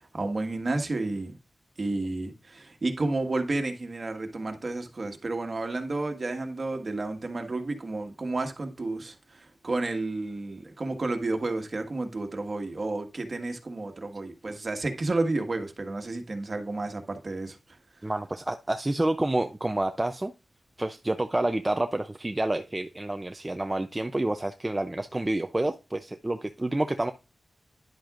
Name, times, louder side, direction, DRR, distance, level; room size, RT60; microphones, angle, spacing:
voice 1, 0.1-1.4 1.8-17.6, right 2 dB, 40° right, 1.5 m, -31 dB
voice 2, 18.0-20.3 20.8-27.1, right 1 dB, 20° right, 0.5 m, -28 dB
10.5 x 7.8 x 2.5 m
wide cardioid pair, 130°, 0 cm